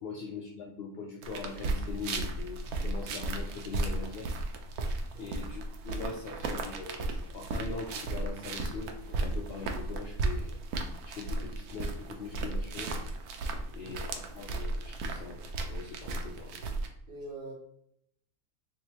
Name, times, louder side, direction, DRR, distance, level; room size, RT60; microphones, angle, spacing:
voice 1, 0.0-4.3 5.2-10.5 11.0-13.0 13.7-16.6, left 4 dB, 70° left, 0 dB, 0.5 m, -42 dB
sound 1, 1.2-16.9, right 2 dB, 80° right, 1.0 m, -35 dB
voice 2, 17.1-17.5, right 2 dB, 55° right, -1 dB, 0.6 m, -43 dB
3.6 x 2.8 x 2.9 m, 0.70 s
omnidirectional pair, 1.6 m